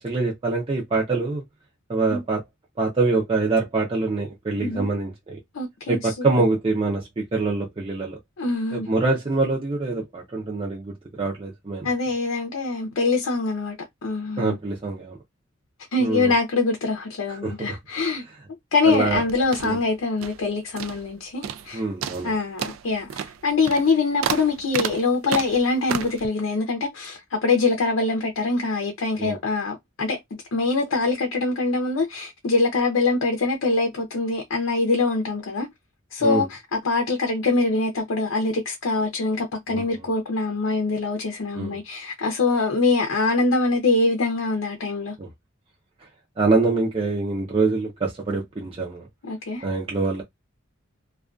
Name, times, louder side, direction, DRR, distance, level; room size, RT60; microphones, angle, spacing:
voice 1, 0.0-1.4 1.9-2.4 2.8-5.4 5.9-8.2 8.7-11.9 14.4-15.2 16.0-16.3 17.3-17.8 18.3-18.4 18.8-19.2 19.6-19.8 21.7-22.3 29.2-29.4 36.2-36.5 39.7-40.1 41.5-41.8 45.2-45.3 46.4-49.1 49.6-50.2, right 3 dB, 30° right, 0.5 m, -25 dB
voice 2, 5.5-6.4 8.4-8.9 11.8-13.8 14.0-14.6 15.9-18.2 18.7-21.8 22.2-30.2 30.5-35.7 36.1-36.5 36.7-45.1 49.2-49.7, left 3 dB, 90° left, 0.6 m, -24 dB
sound 1, 18.9-20.5 20.8-21.1 21.4-21.7 22.0-26.3, right 8 dB, 85° right, 0.3 m, -32 dB
2.3 x 2.3 x 2.4 m
head